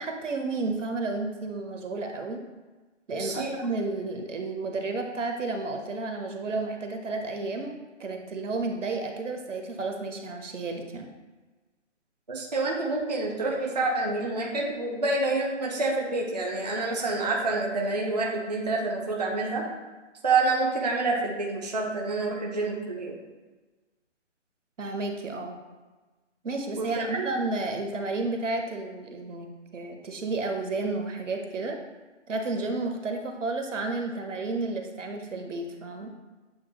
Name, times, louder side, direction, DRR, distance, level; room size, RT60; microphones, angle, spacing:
voice 1, 0.0-2.4 3.1-11.1 24.8-25.6 26.4-29.5 29.7-31.8 32.3-36.1, right 3 dB, 80° right, 4 dB, 0.9 m, -32 dB
voice 2, 3.1-3.5 12.3-19.7 20.2-23.2 26.8-27.3, right 3 dB, 35° right, -2 dB, 0.4 m, -28 dB
8.3 x 2.9 x 2.2 m, 1.3 s
hypercardioid pair, 165°, 37 cm